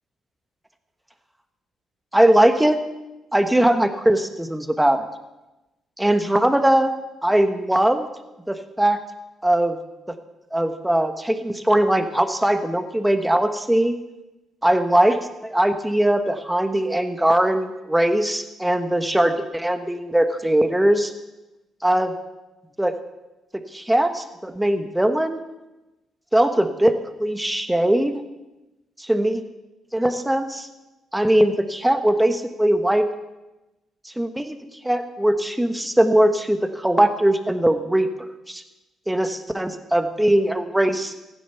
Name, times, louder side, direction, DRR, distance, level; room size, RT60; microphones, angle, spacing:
voice 1, 2.1-2.8 3.3-5.1 6.0-6.9 7.2-8.1 8.5-9.0 9.4-9.8 10.5-13.9 14.6-15.2 15.4-21.1 21.8-22.1 22.8-22.9 23.7-25.4 26.3-26.9 27.2-28.2 29.0-29.4 29.9-30.7 31.1-33.0 34.0-34.6 34.8-38.1 38.5-38.6 39.1-41.1, right 1 dB, 5° right, 8 dB, 1.2 m, -20 dB
15.0 x 10.5 x 5.7 m, 1.0 s
cardioid pair, 90°, 0 cm